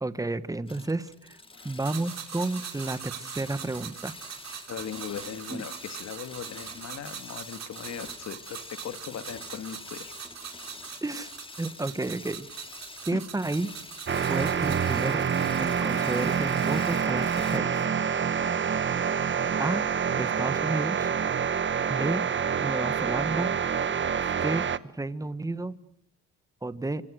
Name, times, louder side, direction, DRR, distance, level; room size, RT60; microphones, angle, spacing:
voice 1, 0.0-1.4 1.6-4.1 5.5-5.6 11.0-11.3 11.6-12.5 13.0-13.8 14.3-15.2 15.6-17.9 19.6-19.8 20.2-21.1 21.9-22.2 22.6-23.5 24.4-24.7 24.9-25.7 26.6-27.0, right 2 dB, 10° right, 13 dB, 1.5 m, -31 dB
sound 1, 0.7-17.6, left 2 dB, 15° left, 2.3 m, -46 dB
sound 2, 1.8-14.9, right 8 dB, 60° right, 4.8 m, -42 dB
voice 2, 4.7-10.1 10.6-10.9 13.1-13.2, left 8 dB, 60° left, 10 dB, 2.0 m, -39 dB
sound 3, 14.1-24.8, right 7 dB, 40° right, 1.1 m, -27 dB
28.0 x 26.0 x 6.5 m, 0.71 s
cardioid pair, 90°, 30 cm